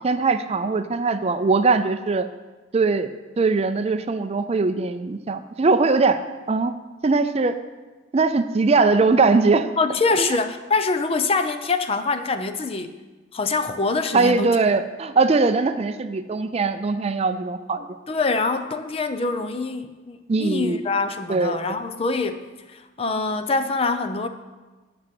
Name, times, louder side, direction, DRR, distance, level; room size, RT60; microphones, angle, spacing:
voice 1, 0.0-2.3 2.7-3.1 3.4-6.2 6.5-6.7 7.0-7.5 8.1-9.7 10.2-10.4 14.1-17.9 20.3-20.8 21.3-21.6, right 3 dB, 35° right, 10 dB, 0.4 m, -21 dB
voice 2, 9.8-12.9 13.3-14.5 18.1-22.4 22.7-24.3, left 3 dB, 30° left, 9 dB, 0.5 m, -24 dB
8.8 x 6.2 x 7.6 m, 1.2 s
head